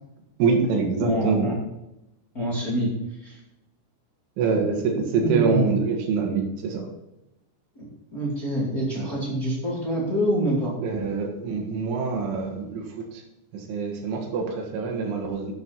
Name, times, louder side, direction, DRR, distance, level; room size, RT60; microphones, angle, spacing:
voice 1, 0.4-1.5 4.4-6.9 9.0-9.1 10.8-13.2 13.5-15.5, right 5 dB, 85° right, 2 dB, 4.3 m, -25 dB
voice 2, 1.0-1.5 2.3-3.4 5.2-5.8 7.7-10.8, equal, 25° left, -4 dB, 2.2 m, -26 dB
11.0 x 9.7 x 4.2 m, 0.91 s
omnidirectional pair, 5.4 m